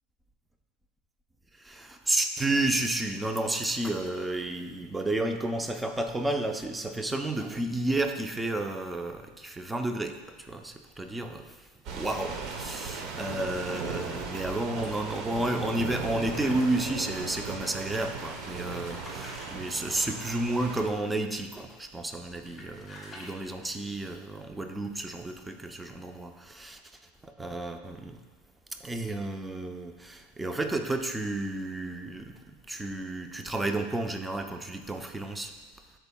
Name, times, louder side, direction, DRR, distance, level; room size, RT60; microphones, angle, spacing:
voice 1, 1.6-11.6 11.9-26.8 27.2-28.2 28.8-32.4 32.7-35.5, right 2 dB, 10° right, 5 dB, 0.6 m, -31 dB
sound 1, 11.8-20.9, right 4 dB, 50° right, 0.9 m, -37 dB
sound 2, 15.8-16.9 18.3-19.5 21.7-22.0 22.3-23.4, left 1 dB, 10° left, 1.7 m, -48 dB
13.0 x 4.5 x 2.3 m, 1.3 s
supercardioid pair, 110°, 0 cm